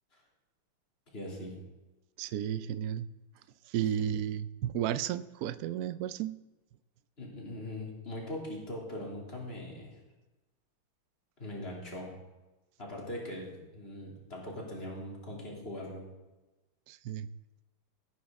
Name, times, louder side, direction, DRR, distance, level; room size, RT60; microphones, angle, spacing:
voice 1, 1.1-1.5 4.0-4.1 7.2-10.0 11.4-12.1 12.8-16.1, left 1 dB, 30° left, -3 dB, 3.1 m, -41 dB
voice 2, 2.2-3.1 3.7-6.4 16.9-17.3, right 10 dB, 90° right, 14 dB, 0.8 m, -33 dB
17.5 x 9.3 x 3.6 m, 1.1 s
omnidirectional pair, 2.2 m